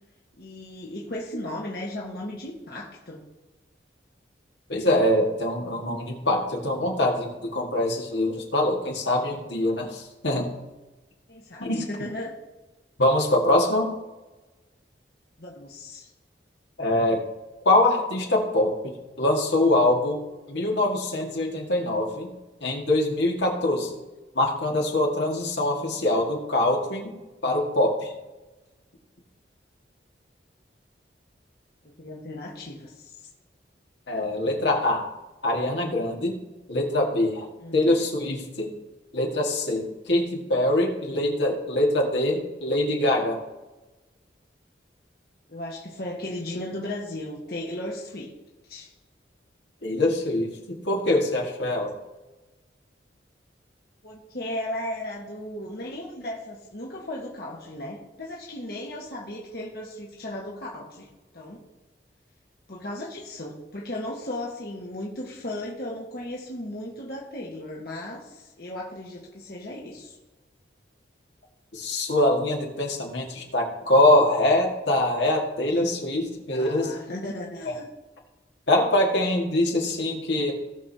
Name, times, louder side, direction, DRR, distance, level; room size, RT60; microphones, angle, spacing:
voice 1, 0.4-3.2 11.3-12.3 15.4-16.1 31.8-33.1 37.6-37.9 45.5-48.3 48.7-48.9 54.0-61.1 61.3-61.6 62.7-70.2 76.3-77.9, left 1 dB, 55° left, -3 dB, 1.4 m, -36 dB
voice 2, 4.7-10.5 11.6-11.8 13.0-13.9 16.8-17.2 17.7-18.7 19.2-20.2 20.5-22.3 22.6-24.0 24.4-27.1 27.4-28.1 34.1-35.1 35.4-36.4 36.7-37.5 37.7-38.7 39.1-43.4 49.8-51.9 71.7-76.9 78.7-80.5, left 1 dB, 75° left, 0 dB, 1.9 m, -23 dB
17.5 x 6.2 x 2.8 m, 1.1 s
head